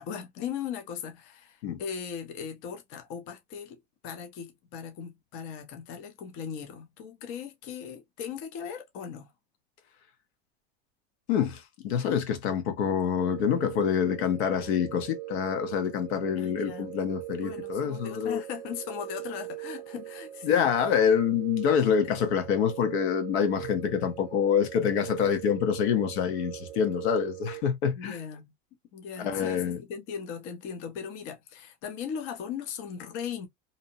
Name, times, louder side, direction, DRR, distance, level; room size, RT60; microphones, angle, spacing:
voice 1, 0.0-9.3 16.4-16.9 17.4-20.7 28.0-28.5 28.9-29.6 29.9-33.5, left 7 dB, 40° left, 0.6 m, -38 dB
voice 2, 11.3-18.4 20.4-28.2 29.2-29.8, left 7 dB, 80° left, 0.9 m, -26 dB
sound 1, 13.2-27.6, right 15 dB, 50° right, 0.4 m, -41 dB
2.7 x 2.0 x 2.7 m
supercardioid pair, 150°, 32 cm